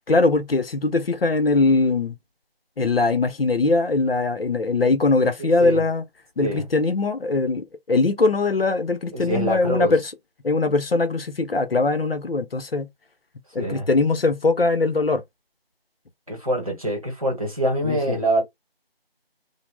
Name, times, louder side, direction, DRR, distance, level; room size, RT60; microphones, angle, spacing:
voice 1, 0.1-2.2 2.8-6.0 6.4-10.1 10.4-12.9 13.5-15.2 17.8-18.2, left 3 dB, 70° left, 0.6 m, -21 dB
voice 2, 9.1-9.9 13.6-13.9 16.3-18.4, right 1 dB, 35° right, 0.9 m, -25 dB
2.3 x 2.0 x 3.2 m
figure-of-eight pair, 170°, 30 cm